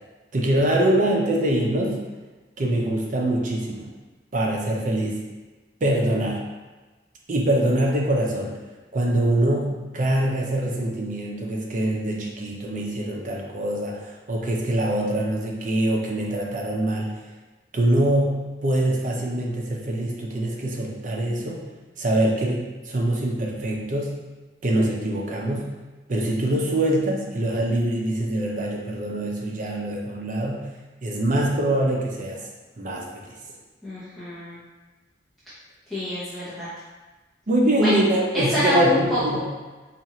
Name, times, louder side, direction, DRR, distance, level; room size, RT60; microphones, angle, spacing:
voice 1, 0.3-2.0 2.6-3.9 4.3-5.2 5.8-6.4 7.3-8.5 8.9-17.2 17.7-21.6 22.0-24.2 24.6-25.6 26.1-30.6 31.0-32.4 32.8-33.3 37.5-39.4, right 1 dB, 45° right, -1 dB, 0.6 m, -24 dB
voice 2, 33.8-34.6 35.9-36.7 37.8-37.9 38.3-39.2, left 1 dB, ahead, -13 dB, 0.8 m, -26 dB
4.2 x 2.4 x 2.9 m, 1.2 s
head